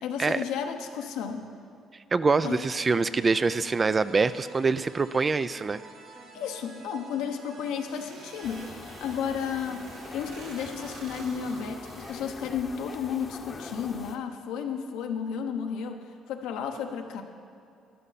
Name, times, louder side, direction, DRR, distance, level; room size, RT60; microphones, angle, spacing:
voice 1, 0.0-1.5 2.4-2.6 6.3-16.0 16.3-17.2, left 7 dB, 85° left, 4 dB, 1.0 m, -33 dB
voice 2, 2.1-5.8, right 4 dB, 30° right, 14 dB, 0.4 m, -25 dB
sound 1, 2.6-11.3, right 3 dB, 65° right, 1.6 m, -49 dB
sound 2, 7.8-12.2, right 2 dB, 85° right, 2.7 m, -48 dB
sound 3, 8.4-14.2, left 3 dB, 30° left, 0.9 m, -44 dB
13.0 x 11.5 x 4.1 m, 2.5 s
cardioid pair, 90°, 0 cm